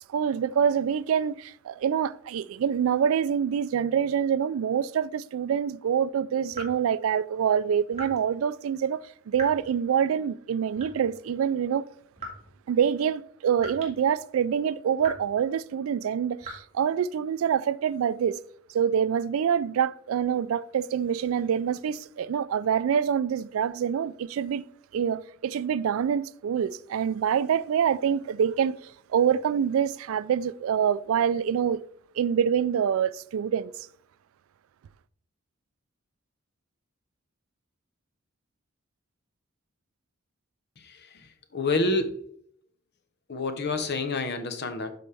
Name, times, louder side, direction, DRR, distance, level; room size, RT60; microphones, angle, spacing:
voice 1, 0.1-11.9 12.7-18.4 18.7-24.6 24.9-31.8 32.2-33.7, right 8 dB, 75° right, 0.3 m, -26 dB
sound 1, 6.5-6.8 7.9-8.2 9.3-9.7 10.7-11.2 12.2-12.5 13.6-14.0 14.3-14.4 15.0-15.4 16.4-16.5, right 1 dB, 35° right, 2.2 m, -40 dB
voice 2, 41.5-42.2 43.3-44.9, left 3 dB, 55° left, 0.9 m, -27 dB
12.0 x 4.2 x 3.4 m
head